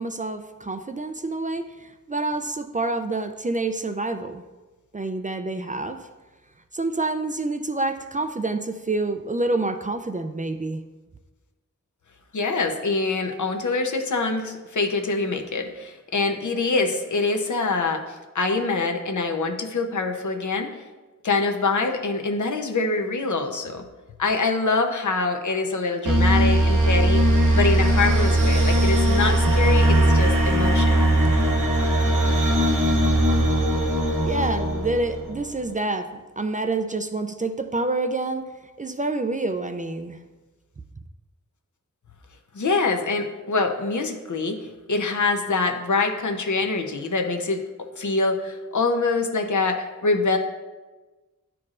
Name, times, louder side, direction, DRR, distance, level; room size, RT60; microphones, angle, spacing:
voice 1, 0.0-4.4 4.9-6.0 6.7-10.8 34.2-38.4 38.8-40.2, right 2 dB, 25° right, 7 dB, 0.3 m, -27 dB
voice 2, 12.3-20.7 21.2-23.8 24.2-27.2 27.5-31.1 42.5-44.6 44.9-47.6 48.0-50.4, left 3 dB, 70° left, 4 dB, 0.8 m, -24 dB
sound 1, 26.1-35.5, right 1 dB, 80° right, 1.0 m, -19 dB
10.5 x 4.6 x 2.5 m, 1.2 s
wide cardioid pair, 80°, 31 cm